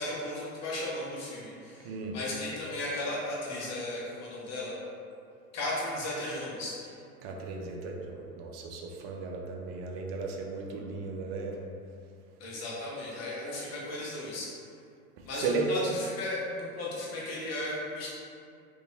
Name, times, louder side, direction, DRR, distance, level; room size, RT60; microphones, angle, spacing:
voice 1, 0.0-4.8 5.5-6.8 12.4-14.5 15.3-18.1, left 1 dB, 35° left, -6 dB, 1.1 m, -35 dB
voice 2, 1.8-2.2 7.2-11.6 15.2-15.7, right 4 dB, 50° right, 0 dB, 0.6 m, -35 dB
3.8 x 2.7 x 2.6 m, 2.4 s
hypercardioid pair, 90°, 45 cm